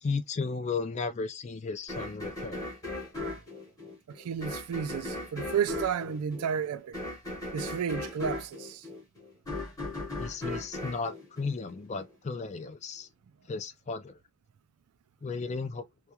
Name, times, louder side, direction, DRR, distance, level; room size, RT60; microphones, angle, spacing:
voice 1, 0.0-2.6 10.2-13.1 13.5-14.2 15.2-15.9, left 4 dB, 30° left, 0.3 m, -34 dB
sound 1, 1.9-12.1, left 2 dB, 15° left, 0.9 m, -38 dB
voice 2, 4.1-7.0 7.5-8.8, right 7 dB, 80° right, 0.3 m, -32 dB
2.3 x 2.2 x 2.8 m
head